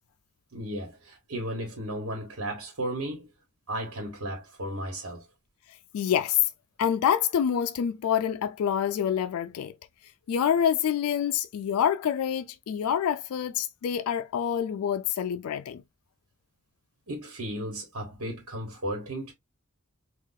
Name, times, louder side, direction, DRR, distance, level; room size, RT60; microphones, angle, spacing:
voice 1, 0.5-3.3 3.7-5.2 17.1-19.3, right 1 dB, 75° right, 1.2 m, -34 dB
voice 2, 5.9-6.5 6.8-9.7 10.3-15.8, left 9 dB, 85° left, 0.3 m, -26 dB
3.9 x 2.4 x 2.6 m
head